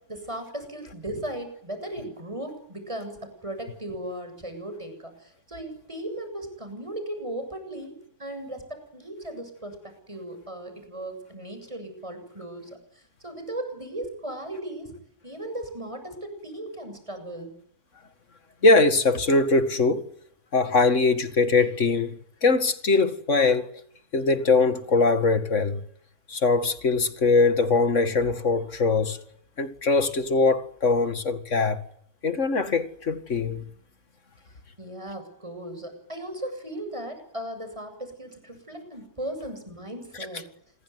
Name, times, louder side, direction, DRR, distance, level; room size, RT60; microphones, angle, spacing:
voice 1, 0.1-15.0 15.2-17.5 34.8-40.4, right 1 dB, 20° right, 7.5 m, -37 dB
voice 2, 18.6-20.1 20.5-23.7 24.1-25.8 26.3-29.2 29.6-31.8 32.2-33.7, left 3 dB, 50° left, 2.4 m, -22 dB
27.0 x 21.5 x 9.5 m
omnidirectional pair, 1.6 m